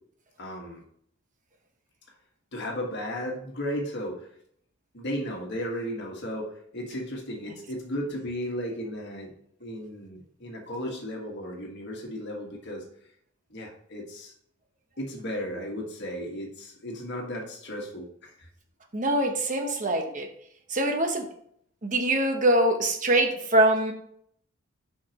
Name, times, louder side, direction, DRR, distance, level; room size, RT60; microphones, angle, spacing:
voice 1, 0.4-0.8 2.5-4.3 4.9-9.3 9.6-12.8 13.5-14.3 15.0-18.5 19.6-19.7 20.1-20.2, equal, 50° left, 0 dB, 1.6 m, -35 dB
voice 2, 18.9-20.3 20.7-21.3 21.8-23.9, right 1 dB, 35° right, 4 dB, 1.0 m, -23 dB
8.5 x 5.8 x 3.0 m, 0.67 s
head